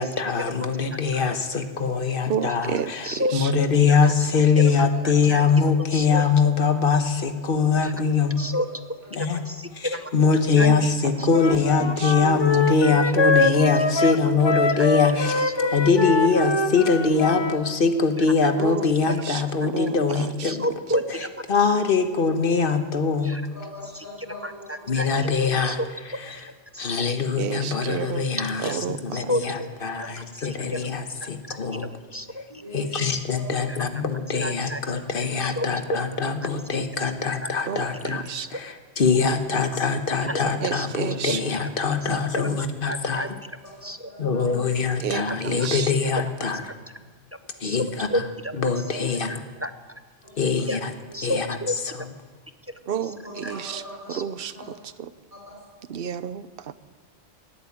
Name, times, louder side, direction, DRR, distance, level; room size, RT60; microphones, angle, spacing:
voice 1, 0.0-8.4 9.1-9.4 9.7-15.4 15.7-20.7 21.5-23.4 24.9-25.8 26.8-28.7 29.0-31.9 32.7-38.2 38.5-43.3 44.2-46.6 47.6-48.1 48.6-49.4 50.4-50.9 51.2-51.6, left 5 dB, 55° left, 8 dB, 1.3 m, -23 dB
voice 2, 2.3-3.5 10.6-10.9 11.2-12.1 18.6-20.5 27.4-28.3 28.6-29.3 37.7-38.5 40.6-41.4 45.0-45.9 52.9-53.8 54.1-54.5 55.0-55.1 55.9-56.7, right 8 dB, 60° right, 14 dB, 0.9 m, -31 dB
voice 3, 3.9-4.7 5.0-5.4 5.9-6.2 7.8-7.9 8.4-9.0 9.5-10.1 10.6-10.7 11.2-11.3 13.0-13.1 14.0-14.1 14.7-14.9 15.4-16.0 18.2-18.3 20.4-21.3 23.2-23.4 24.4-25.1 25.6-25.8 26.1-26.9 28.6-28.7 29.1-29.7 30.3-30.9 31.2-32.4 34.4-34.8 35.4-36.0 37.4-37.5 38.3-38.5 40.2-40.4 40.7-40.9 41.5-41.6 42.3-42.4 42.9-43.3 43.8-44.1 45.1-45.9 47.6-47.8 48.1-48.5 49.6-49.7 50.7-50.8 51.1-51.7 52.7-53.1 53.4-53.5 54.1-54.2, equal, 20° right, 10 dB, 0.4 m, -31 dB
voice 4, 9.0-9.4 9.8-10.0 16.8-16.9 23.5-24.9 27.0-27.1 32.5-33.0 33.4-33.8 35.0-35.1 37.7-37.8 43.6-44.6 47.3-47.5 48.7-48.9 50.2-50.7 51.0-51.2 53.0-54.2 54.5-54.7 55.3-55.6, equal, 35° right, -5 dB, 4.1 m, -42 dB
Wind instrument woodwind instrument, 11.3-17.6, left 3 dB, 30° left, 0.7 m, -24 dB
18.5 x 8.8 x 8.5 m, 1.4 s
omnidirectional pair, 1.1 m